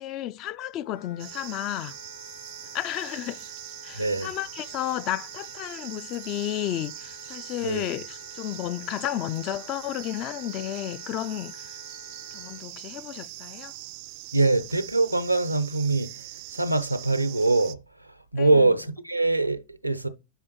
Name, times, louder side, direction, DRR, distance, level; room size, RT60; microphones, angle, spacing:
voice 1, 0.0-2.0 2.7-3.4 3.8-11.6 12.3-13.7 18.4-18.5, left 13 dB, 40° left, 0.4 m, -32 dB
Wind instrument woodwind instrument, 0.8-12.6, left 7 dB, 55° left, 3.0 m, -49 dB
sound 1, 1.2-17.8, right 19 dB, 45° right, 0.4 m, -42 dB
voice 2, 4.0-4.3 7.6-7.9 14.3-20.1, right 3 dB, 90° right, 0.6 m, -24 dB
10.0 x 3.6 x 3.0 m
figure-of-eight pair, 90°, 0 cm